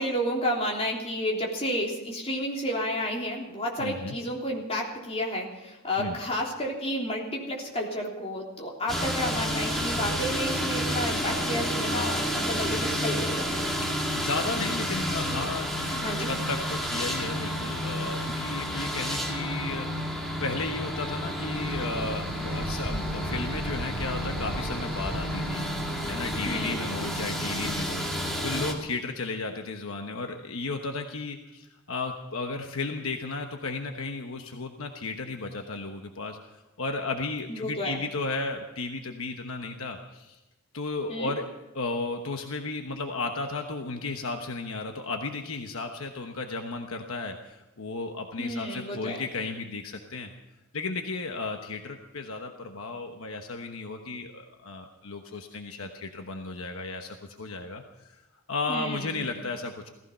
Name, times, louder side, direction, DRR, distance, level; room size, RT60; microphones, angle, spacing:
voice 1, 0.0-13.4 16.0-16.3 26.4-26.8 37.5-38.0 41.1-41.3 48.4-49.2 58.7-59.2, equal, 30° left, -2 dB, 3.3 m, -31 dB
voice 2, 3.8-4.1 6.0-6.2 14.1-25.7 26.1-28.0 28.4-40.4 40.7-41.4 41.7-50.3 50.7-58.2 58.5-59.9, left 3 dB, 65° left, 4 dB, 1.1 m, -34 dB
sound 1, 8.9-28.7, equal, ahead, 2.3 m, -30 dB
sound 2, 21.5-26.5, right 2 dB, 25° right, 0.5 m, -38 dB
17.0 x 15.0 x 5.6 m, 1.0 s
head